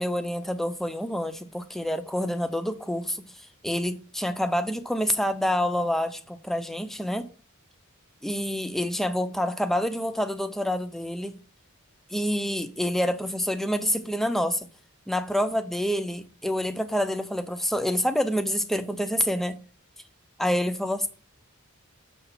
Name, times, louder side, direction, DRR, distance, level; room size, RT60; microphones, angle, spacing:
voice 1, 0.0-7.3 8.2-11.4 12.1-14.7 15.1-19.6 20.4-21.1, equal, ahead, 0.4 m, -27 dB
6.8 x 3.7 x 5.8 m
head